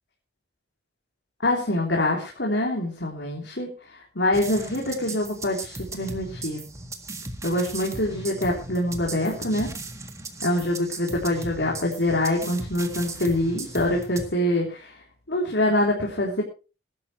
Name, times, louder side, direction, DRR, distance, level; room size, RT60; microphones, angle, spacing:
voice 1, 1.4-6.6 7.4-9.7 10.4-14.9 15.3-16.4, left 1 dB, 80° left, -2 dB, 3.7 m, -25 dB
sound 1, 4.3-14.3, right 2 dB, 15° right, 1.7 m, -37 dB
21.0 x 11.5 x 3.2 m, 0.33 s
head